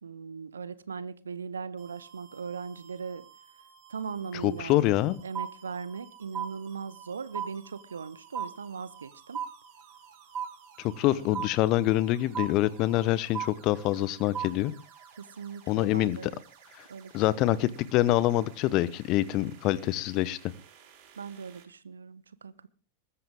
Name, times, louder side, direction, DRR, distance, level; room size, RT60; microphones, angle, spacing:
voice 1, 0.0-3.2 3.9-4.8 5.2-9.4 11.1-11.5 15.2-16.4 16.9-17.7 21.2-22.7, right 5 dB, 70° right, 1.0 m, -39 dB
sound 1, 1.8-21.6, right 8 dB, 50° right, 5.9 m, -56 dB
voice 2, 4.3-5.2 10.8-14.7 15.7-16.3 16.8-16.9 17.1-20.4, left 15 dB, 40° left, 1.0 m, -26 dB
sound 2, 5.3-6.1 6.3-7.1 7.3-8.1 8.3-9.1 9.3-10.1 10.3-11.1 11.3-12.1 12.3-13.1 13.3-14.1 14.3-15.1, right 8 dB, 20° right, 1.8 m, -36 dB
21.0 x 13.0 x 3.7 m
figure-of-eight pair, 90°, 0 cm